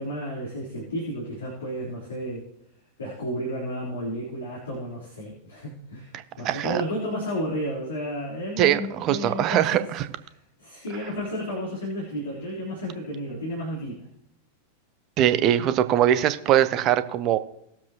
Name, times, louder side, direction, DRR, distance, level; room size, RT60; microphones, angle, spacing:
voice 1, 0.0-2.4 3.0-9.9 10.6-14.1, equal, 70° left, -5 dB, 3.5 m, -32 dB
voice 2, 6.1-6.8 8.6-10.1 15.2-17.4, right 11 dB, 35° right, 12 dB, 0.8 m, -22 dB
20.0 x 7.3 x 2.9 m, 0.78 s
figure-of-eight pair, 90°, 0 cm